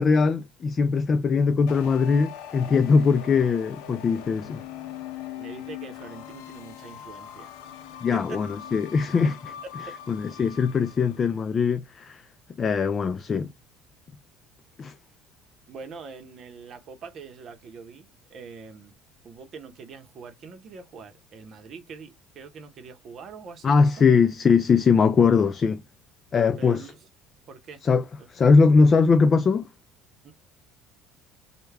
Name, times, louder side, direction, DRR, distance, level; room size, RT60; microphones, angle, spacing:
voice 1, 0.0-4.6 8.0-9.3 10.1-12.2 12.6-13.5 14.8-14.9 23.6-25.8 26.3-26.9 27.8-29.7, left 5 dB, 25° left, 0.3 m, -21 dB
sound 1, 1.7-11.3, left 9 dB, 80° left, 0.5 m, -41 dB
voice 2, 5.4-7.5 8.1-8.4 9.6-10.0 15.7-19.0 19.2-24.1 26.6-27.1 27.5-27.8 28.2-28.3 30.2-30.3, right 5 dB, 40° right, 0.8 m, -43 dB
3.4 x 2.2 x 3.3 m
cardioid pair, 150°, 0 cm